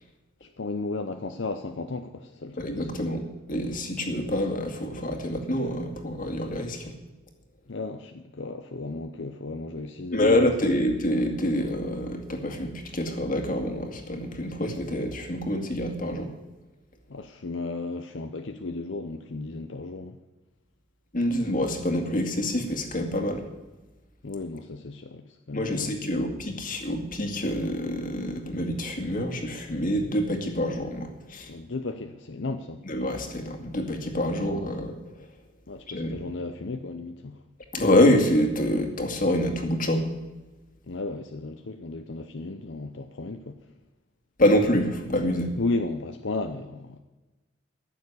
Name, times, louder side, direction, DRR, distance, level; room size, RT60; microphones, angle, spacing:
voice 1, 0.4-3.0 7.7-10.9 17.1-20.2 24.2-26.3 31.5-32.8 34.3-34.4 35.7-37.4 40.9-43.6 45.6-47.0, left 3 dB, 75° left, 0.8 m, -34 dB
voice 2, 2.6-3.2 3.5-6.9 10.1-16.3 21.1-23.4 25.5-31.5 32.9-35.0 35.9-36.1 37.7-40.1 44.4-45.5, left 1 dB, 45° left, 2.2 m, -26 dB
14.0 x 7.2 x 9.7 m
head